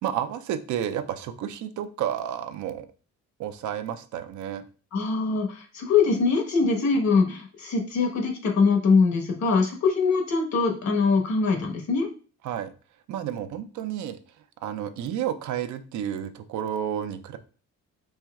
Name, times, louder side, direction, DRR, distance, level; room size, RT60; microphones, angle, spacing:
voice 1, 0.0-2.9 3.4-4.6 12.4-12.7 13.1-14.2 14.6-17.4, right 10 dB, 75° right, 9 dB, 0.6 m, -31 dB
voice 2, 4.9-12.1, left 4 dB, 65° left, 3 dB, 1.3 m, -23 dB
4.4 x 4.2 x 2.3 m, 0.38 s
cardioid pair, 90°, 30 cm